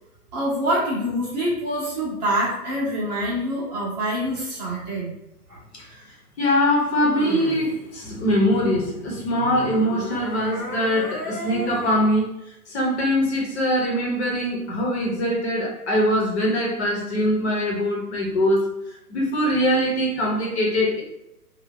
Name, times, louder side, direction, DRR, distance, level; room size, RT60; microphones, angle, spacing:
voice 1, 0.3-5.1, equal, 25° right, -6 dB, 0.9 m, -25 dB
sound 1, 5.5-5.6 7.0-7.8 9.4-12.1 18.6-18.7, equal, 5° right, 0.5 m, -33 dB
voice 2, 6.4-12.3 12.7-18.6 19.1-21.0, equal, 45° left, -3 dB, 1.1 m, -22 dB
2.7 x 2.4 x 3.7 m, 0.88 s
figure-of-eight pair, 130°, 47 cm